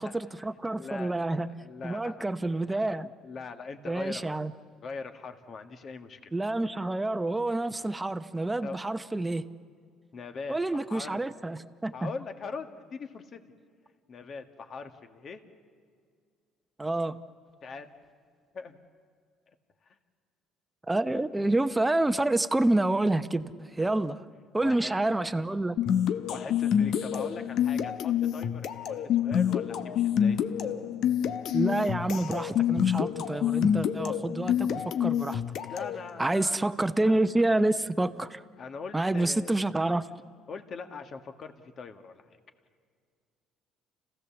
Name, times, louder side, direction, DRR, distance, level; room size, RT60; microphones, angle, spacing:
voice 1, 0.0-1.5 1.8-3.1 3.9-4.5 6.3-9.4 10.5-12.1 16.8-17.2 20.9-24.2 24.5-25.8 31.5-35.4 36.2-38.4 38.9-40.1, right 2 dB, 15° right, 10 dB, 0.9 m, -28 dB
voice 2, 0.7-2.2 2.6-2.7 3.0-4.4 4.8-6.3 8.6-8.8 10.1-11.2 11.9-13.4 14.1-15.4 17.6-17.9 18.5-18.8 19.8-20.0 23.8-24.0 24.6-25.0 26.3-30.4 35.7-36.7 37.1-37.2 38.6-39.5 40.5-42.2, left 4 dB, 45° left, 6 dB, 1.7 m, -41 dB
sound 1, 25.8-36.0, left 9 dB, 65° left, 0.9 m, -27 dB
30.0 x 16.0 x 7.1 m, 2.1 s
supercardioid pair, 90°, 0 cm